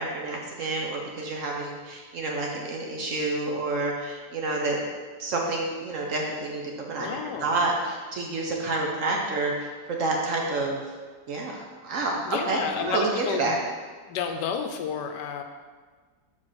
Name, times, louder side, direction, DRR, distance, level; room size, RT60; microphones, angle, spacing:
voice 1, 0.0-4.8 5.2-6.6 6.9-10.8 11.3-13.6, right 2 dB, 55° right, 0 dB, 1.0 m, -29 dB
voice 2, 7.0-7.6 12.3-13.0 13.2-13.6 14.1-15.4, left 7 dB, 80° left, 6 dB, 1.2 m, -31 dB
4.8 x 4.6 x 5.7 m, 1.5 s
omnidirectional pair, 1.9 m